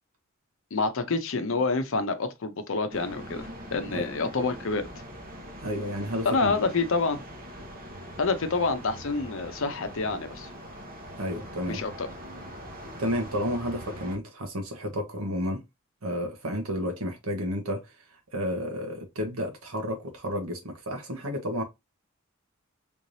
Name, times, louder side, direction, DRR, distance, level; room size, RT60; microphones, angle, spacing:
voice 1, 0.7-4.9 6.2-7.2 8.2-10.5 11.7-12.1, left 3 dB, 70° left, 0.7 m, -27 dB
sound 1, 2.9-14.2, equal, 45° right, 1.0 m, -42 dB
voice 2, 5.6-6.6 11.2-11.8 13.0-15.6 16.0-17.9 18.3-21.6, equal, 85° right, 1.3 m, -31 dB
3.4 x 3.3 x 2.7 m
head